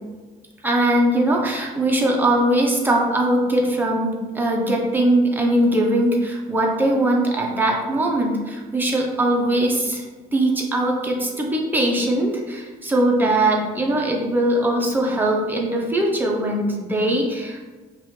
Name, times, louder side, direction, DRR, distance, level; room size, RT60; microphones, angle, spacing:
voice 1, 0.6-10.0 10.3-17.6, right 1 dB, 10° right, -1 dB, 0.9 m, -21 dB
5.5 x 2.6 x 3.2 m, 1.4 s
cardioid pair, 110°, 17 cm